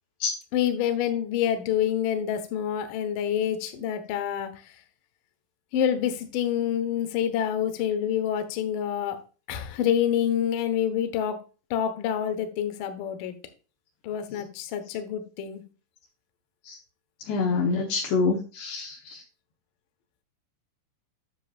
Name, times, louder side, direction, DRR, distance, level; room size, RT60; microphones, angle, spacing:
voice 1, 0.5-4.8 5.7-9.2 9.5-11.4 11.7-13.4 14.0-15.6, left 9 dB, 90° left, 8 dB, 1.8 m, -27 dB
voice 2, 17.3-19.2, left 4 dB, 70° left, 0 dB, 2.9 m, -27 dB
9.9 x 7.2 x 2.4 m, 0.34 s
omnidirectional pair, 5.6 m